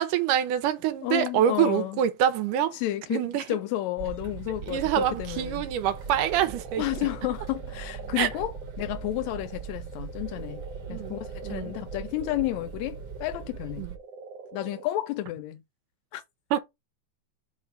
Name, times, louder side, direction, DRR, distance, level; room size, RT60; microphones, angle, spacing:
voice 1, 0.0-2.8 3.1-3.5 4.7-6.8 8.2-8.3 10.9-11.2 11.4-11.7 13.8-13.9 16.5-16.6, right 10 dB, 90° right, 2.3 m, -25 dB
voice 2, 1.0-2.0 2.7-5.6 6.8-10.6 10.9-13.9 14.5-15.6 16.1-16.2, left 15 dB, 80° left, 1.6 m, -31 dB
sound 1, 4.0-14.0, right 6 dB, 50° right, 1.3 m, -40 dB
sound 2, 4.6-14.8, right 5 dB, 70° right, 1.5 m, -45 dB
5.2 x 3.8 x 5.5 m
omnidirectional pair, 3.6 m